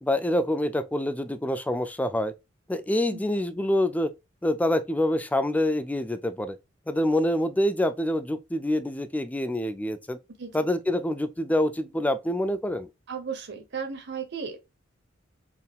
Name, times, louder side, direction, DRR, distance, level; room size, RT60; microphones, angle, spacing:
voice 1, 0.0-2.3 2.7-4.1 4.4-6.6 6.9-10.2 10.5-12.9, left 1 dB, 10° left, 0.3 m, -26 dB
voice 2, 13.1-14.6, right 6 dB, 60° right, 0.9 m, -35 dB
4.3 x 3.6 x 2.3 m
head